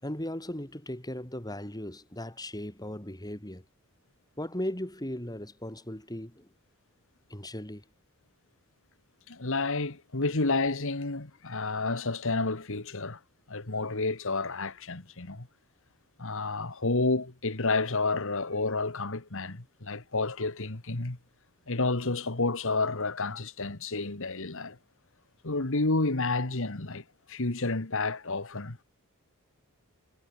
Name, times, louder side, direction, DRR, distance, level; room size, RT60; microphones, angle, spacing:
voice 1, 0.0-3.6 4.4-6.5 7.3-7.8, left 1 dB, 15° left, 4.5 m, -37 dB
voice 2, 9.3-13.2 13.5-15.5 16.2-21.2 21.7-24.8 25.4-27.0 27.3-28.8, left 3 dB, 60° left, 1.9 m, -30 dB
head